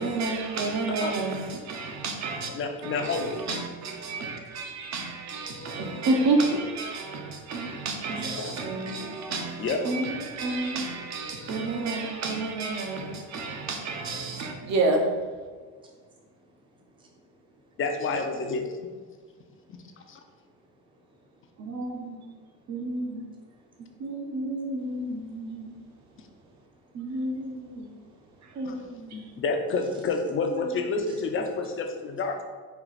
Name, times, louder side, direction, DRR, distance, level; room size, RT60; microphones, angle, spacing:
voice 1, 0.0-2.5 2.8-15.1 21.6-22.3 22.7-23.2 24.0-25.8 26.9-28.0 28.5-29.2 30.4-30.8, right 2 dB, 45° right, 3 dB, 0.8 m, -30 dB
voice 2, 0.9-1.2 2.5-3.4 8.4-8.6 9.6-9.9 17.8-18.7 20.1-20.2 28.6-28.8 29.1-32.4, left 3 dB, 35° left, 4 dB, 0.5 m, -29 dB
voice 3, 15.5-17.8 19.1-20.4 20.7-22.8 23.5-24.5 25.5-27.2 27.5-28.6 29.1-29.4 31.1-31.2, right 1 dB, 15° right, -1 dB, 0.6 m, -55 dB
4.5 x 2.4 x 4.0 m, 1.5 s
cardioid pair, 110°, 37 cm